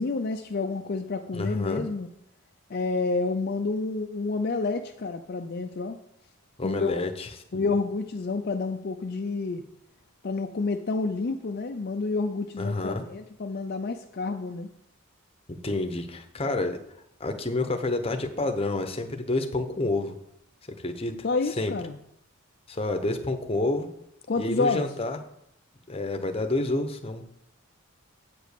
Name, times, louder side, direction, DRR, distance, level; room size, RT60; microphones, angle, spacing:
voice 1, 0.0-2.1 2.7-6.0 6.6-7.0 7.5-9.6 10.2-14.7 21.2-22.0 24.3-24.9, left 3 dB, 45° left, 4 dB, 0.5 m, -29 dB
voice 2, 1.3-1.8 6.6-7.7 12.6-13.0 15.6-16.8 17.2-20.1 20.8-21.1 21.6-21.7 22.7-23.9 24.4-25.2 25.9-27.2, left 2 dB, 25° left, 6 dB, 0.8 m, -29 dB
8.6 x 5.1 x 6.7 m, 0.75 s
head